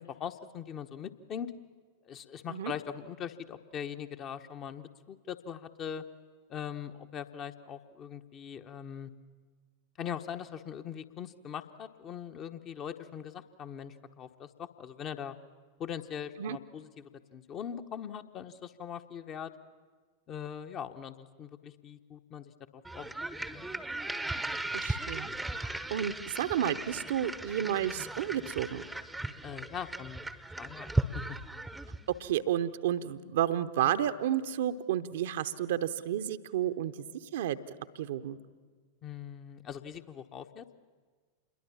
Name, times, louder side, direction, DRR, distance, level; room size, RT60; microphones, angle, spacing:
voice 1, 0.0-1.5 2.0-6.0 6.5-9.1 10.0-15.4 15.8-19.5 20.3-23.6 29.4-30.2 30.6-31.4 39.0-40.7, left 8 dB, 30° left, 7 dB, 1.1 m, -41 dB
sound 1, 22.9-32.2, right 2 dB, 5° right, 0.9 m, -36 dB
voice 2, 24.7-25.3 25.6-28.8 32.2-36.9 37.3-38.4, right 11 dB, 55° right, 10 dB, 0.9 m, -31 dB
27.5 x 22.0 x 7.3 m, 1.5 s
figure-of-eight pair, 90°, 0 cm